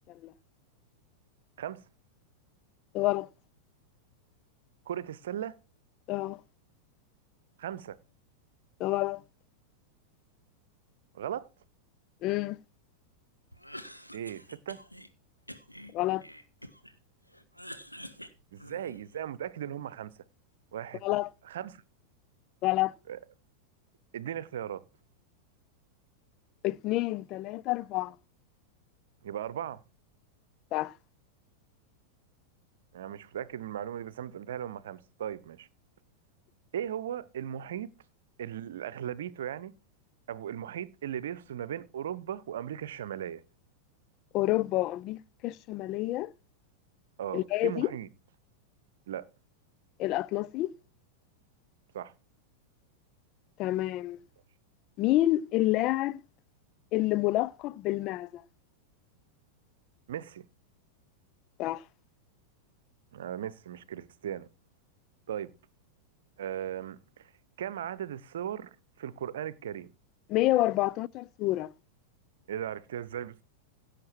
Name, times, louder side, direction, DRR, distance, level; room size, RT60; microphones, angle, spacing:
voice 1, 1.6-1.9 4.9-5.6 7.6-8.0 11.1-11.5 14.1-14.8 18.5-20.1 20.7-21.0 21.4-21.8 23.1-23.2 24.1-24.8 29.2-29.8 32.9-35.7 36.7-37.9 38.4-39.7 40.3-43.4 47.2-48.1 49.1-49.3 51.9-52.1 60.1-60.4 63.1-64.5 65.3-65.5 66.4-67.3 67.6-69.9 72.5-73.4, right 10 dB, 60° right, 0.8 m, -37 dB
voice 2, 2.9-3.3 6.1-6.4 8.8-9.2 12.2-12.6 15.9-16.2 21.0-21.3 22.6-22.9 26.6-28.1 30.7-30.9 44.3-46.3 47.3-47.9 50.0-50.7 53.6-54.2 55.0-56.2 56.9-58.4 61.6-61.8 70.3-71.7, left 17 dB, 40° left, 0.5 m, -28 dB
Cough, 13.5-15.1 15.5-17.0 17.3-19.2, equal, 90° left, 1.3 m, -47 dB
16.5 x 7.4 x 4.6 m
figure-of-eight pair, 90°, 0 cm